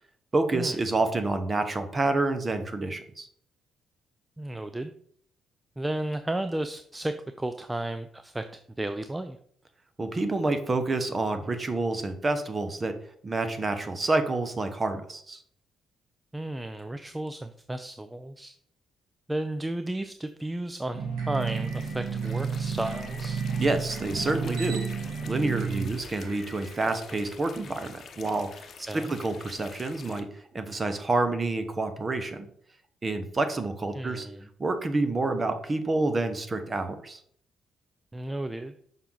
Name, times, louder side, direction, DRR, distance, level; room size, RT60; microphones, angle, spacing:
voice 1, 0.3-3.3 10.0-12.9 13.2-15.4 23.6-24.8 25.3-30.3 30.5-32.5 33.0-34.3 34.6-37.2, right 2 dB, 30° right, 8 dB, 1.0 m, -28 dB
voice 2, 4.4-4.9 5.8-8.5 8.8-9.4 16.3-18.5 19.3-23.4 28.9-29.2 33.9-34.5 38.1-38.7, right 1 dB, 15° right, 9 dB, 0.4 m, -33 dB
sound 1, 20.9-27.5, right 5 dB, 85° right, 1.9 m, -32 dB
sound 2, 21.3-30.2, left 6 dB, 55° left, 0.8 m, -48 dB
5.9 x 5.7 x 3.9 m, 0.63 s
cardioid pair, 90°, 0 cm